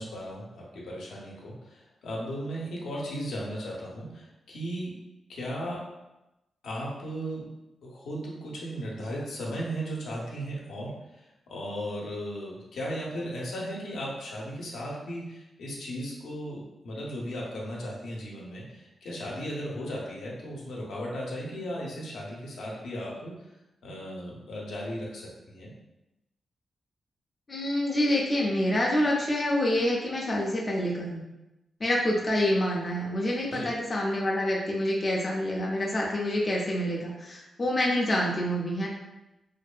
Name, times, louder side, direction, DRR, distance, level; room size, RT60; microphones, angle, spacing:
voice 1, 0.0-4.9 5.3-5.8 6.6-7.4 7.8-23.3 23.8-25.7 33.5-33.7, equal, 85° left, -4 dB, 0.6 m, -36 dB
voice 2, 27.5-31.2 31.8-38.9, left 1 dB, 30° left, -3 dB, 0.4 m, -27 dB
2.6 x 2.1 x 2.4 m, 0.95 s
wide cardioid pair, 150°, 0 cm